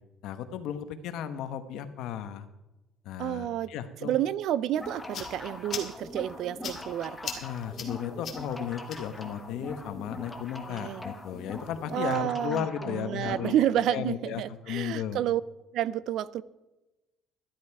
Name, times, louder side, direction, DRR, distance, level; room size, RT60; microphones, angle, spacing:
voice 1, 0.2-2.5 3.0-4.1 7.4-13.5 13.9-15.2, left 9 dB, 60° left, 10 dB, 1.1 m, -35 dB
voice 2, 3.2-3.7 4.0-7.2 10.7-11.0 11.9-15.4 15.7-16.4, right 11 dB, 55° right, 19 dB, 0.4 m, -30 dB
sound 1, 4.7-13.6, left 2 dB, 10° left, 1.0 m, -42 dB
sound 2, 4.8-12.2, left 6 dB, 35° left, 2.0 m, -44 dB
13.0 x 11.5 x 4.7 m, 1.0 s
cardioid pair, 180°, 0 cm